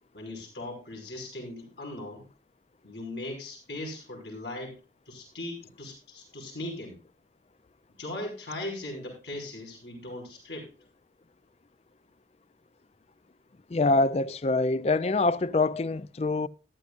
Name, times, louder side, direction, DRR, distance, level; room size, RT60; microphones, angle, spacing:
voice 1, 0.1-2.2 2.8-4.7 5.1-7.0 8.0-10.7, left 1 dB, 75° left, 5.4 m, -39 dB
voice 2, 13.7-16.5, left 3 dB, 35° left, 0.4 m, -25 dB
14.5 x 11.5 x 2.5 m
head